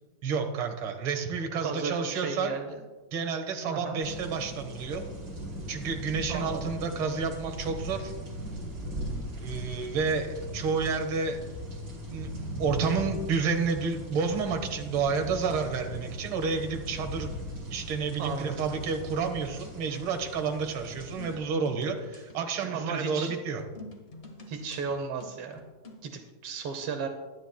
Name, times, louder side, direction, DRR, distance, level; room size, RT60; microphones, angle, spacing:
voice 1, 0.2-2.6 3.1-5.0 5.7-8.1 9.4-11.4 12.1-12.3 12.6-17.3 17.7-23.6, right 5 dB, 60° right, 4 dB, 1.5 m, -30 dB
voice 2, 1.6-2.8 3.7-4.0 6.3-6.6 18.2-18.6 22.6-23.3 24.5-25.6 26.0-27.1, right 5 dB, 80° right, 5 dB, 1.3 m, -34 dB
sound 1, 4.0-21.4, equal, 30° right, 3.3 m, -39 dB
sound 2, 21.0-26.1, left 2 dB, 75° left, 0.6 m, -48 dB
23.5 x 10.0 x 2.2 m, 1.2 s
omnidirectional pair, 3.8 m